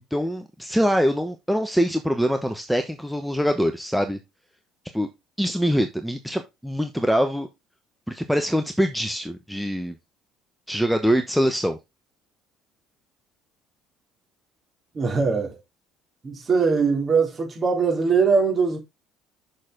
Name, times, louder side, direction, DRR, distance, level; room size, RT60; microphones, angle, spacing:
voice 1, 0.1-4.2 4.9-5.1 5.4-7.5 8.1-9.9 10.7-11.8, equal, ahead, 1.1 m, -23 dB
voice 2, 14.9-15.6 16.2-18.8, right 5 dB, 35° right, 3.7 m, -21 dB
6.7 x 6.3 x 3.8 m
hypercardioid pair, 60°, 0 cm